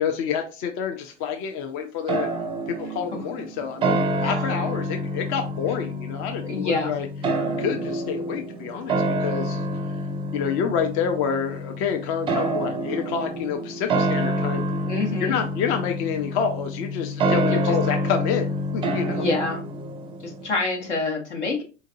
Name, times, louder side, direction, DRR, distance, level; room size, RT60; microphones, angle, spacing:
voice 1, 0.0-2.3 2.7-7.1 7.6-9.6 10.3-14.6 15.2-18.5 18.7-19.2, left 7 dB, 40° left, 5 dB, 0.5 m, -28 dB
sound 1, 2.1-20.5, right 1 dB, 15° right, 0.4 m, -27 dB
voice 2, 6.4-6.9 14.9-15.3 17.4-17.8 19.1-19.7 20.2-21.6, left 3 dB, 75° left, 2 dB, 1.3 m, -27 dB
3.9 x 2.6 x 2.5 m, 0.33 s
hypercardioid pair, 95°, 35 cm